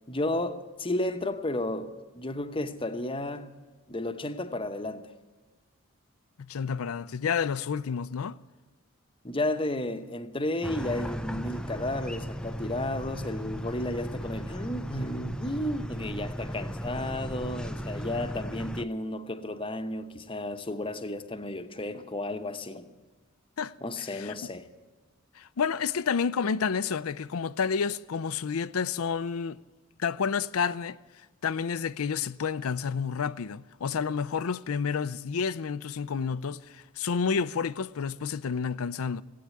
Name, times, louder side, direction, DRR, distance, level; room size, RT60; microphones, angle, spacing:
voice 1, 0.1-3.5 3.9-5.1 9.2-22.9 23.8-24.7, left 1 dB, 25° left, 0.8 m, -33 dB
voice 2, 6.4-8.4 23.6-23.7 24.1-24.3 25.4-29.6 30.0-31.0 31.4-39.2, left 6 dB, 90° left, 0.5 m, -30 dB
sound 1, 10.6-18.8, equal, 5° left, 0.4 m, -36 dB
16.5 x 8.7 x 9.3 m
head